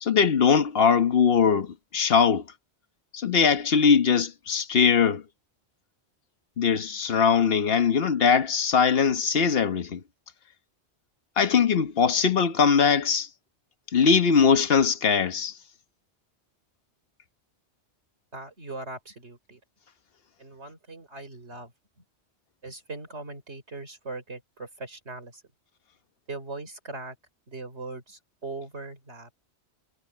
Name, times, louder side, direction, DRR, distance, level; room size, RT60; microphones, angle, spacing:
voice 1, 0.0-2.4 3.1-5.2 6.6-10.0 11.4-13.3 13.9-15.6, left 6 dB, 55° left, 1.4 m, -21 dB
voice 2, 18.3-19.6 20.4-22.0 22.6-25.4 26.3-27.2 27.5-29.3, right 3 dB, 70° right, 4.6 m, -40 dB
omnidirectional pair, 1.2 m